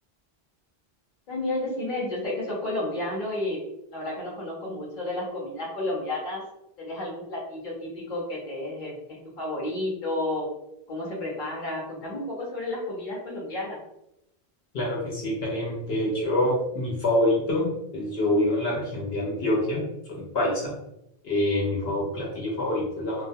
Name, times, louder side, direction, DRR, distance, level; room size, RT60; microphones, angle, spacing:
voice 1, 1.3-3.6 3.9-6.4 6.8-10.5 10.9-13.8, left 1 dB, 55° left, -4 dB, 0.9 m, -31 dB
voice 2, 14.7-20.7 21.2-23.3, left 1 dB, 80° left, -3 dB, 1.0 m, -26 dB
2.3 x 2.1 x 2.6 m, 0.83 s
omnidirectional pair, 1.0 m